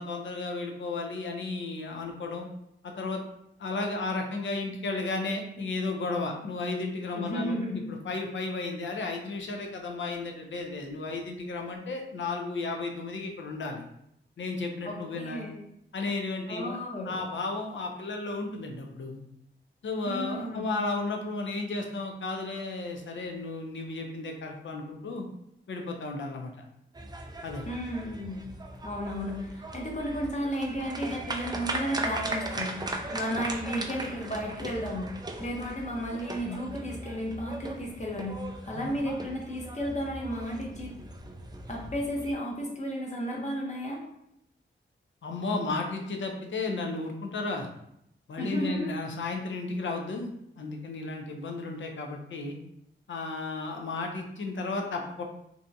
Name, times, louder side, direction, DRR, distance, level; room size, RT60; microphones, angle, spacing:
voice 1, 0.0-2.5 2.8-3.2 3.6-13.8 14.4-15.5 15.9-16.8 17.0-19.2 19.8-25.3 25.7-26.5 27.4-27.6 38.7-38.8 45.2-47.7 48.3-50.3 50.6-52.6 53.1-55.2, left 3 dB, 65° left, 2 dB, 0.5 m, -33 dB
voice 2, 7.1-7.8 14.8-15.6 16.5-17.2 20.1-20.7 27.7-28.4 28.8-40.9 41.7-44.0 48.4-48.9, equal, 35° left, -2 dB, 0.8 m, -33 dB
sound 1, 26.9-42.3, right 2 dB, 20° right, 0.3 m, -38 dB
2.6 x 2.2 x 2.6 m, 0.77 s
cardioid pair, 55°, 21 cm